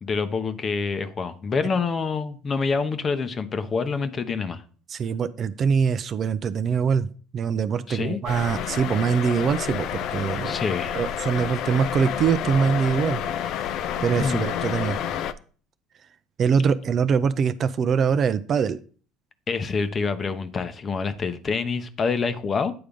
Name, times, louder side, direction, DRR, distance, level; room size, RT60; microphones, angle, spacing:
voice 1, 0.0-4.6 7.9-8.2 10.4-11.0 14.2-14.4 19.5-22.7, left 5 dB, 35° left, 0.9 m, -26 dB
voice 2, 4.9-7.1 7.3-10.6 10.9-13.2 13.5-13.7 14.0-15.0 16.4-18.8, right 6 dB, 45° right, 0.5 m, -23 dB
sound 1, 8.3-15.3, left 9 dB, 60° left, 0.5 m, -29 dB
8.8 x 3.4 x 5.3 m
hypercardioid pair, 75°, 0 cm